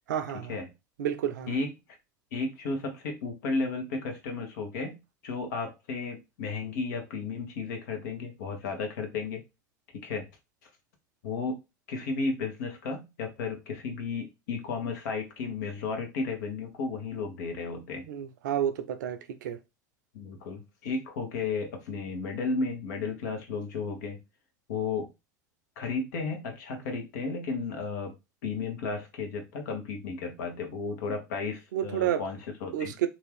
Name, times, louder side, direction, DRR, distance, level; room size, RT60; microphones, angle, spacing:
voice 1, 0.1-0.6 1.0-1.5 18.1-19.6 31.7-32.2 32.7-33.1, right 10 dB, 75° right, 0.5 m, -30 dB
voice 2, 2.3-5.0 5.2-9.4 9.9-10.3 11.2-11.6 11.9-18.1 20.1-24.2 24.7-25.1 25.8-28.1 28.4-32.9, left 4 dB, 70° left, 0.9 m, -33 dB
2.7 x 2.4 x 3.4 m
hypercardioid pair, 80°, 10 cm